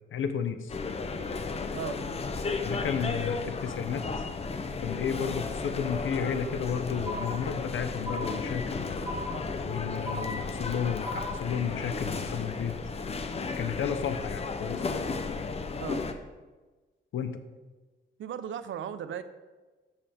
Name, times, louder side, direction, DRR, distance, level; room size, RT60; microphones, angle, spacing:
voice 1, 0.1-0.8 2.6-4.0 4.8-9.0 9.6-12.8 13.6-14.8 17.1-17.4, left 7 dB, 80° left, 9 dB, 0.9 m, -32 dB
sound 1, 0.7-16.1, left 4 dB, 30° left, 0.7 m, -34 dB
sound 2, 7.1-7.7 8.1-8.7 9.1-9.7 10.1-10.7 11.1-11.7, equal, 15° right, 1.1 m, -38 dB
voice 2, 18.2-19.2, right 9 dB, 75° right, 12 dB, 0.7 m, -36 dB
13.5 x 7.4 x 3.5 m, 1.2 s
wide cardioid pair, 165°, 20 cm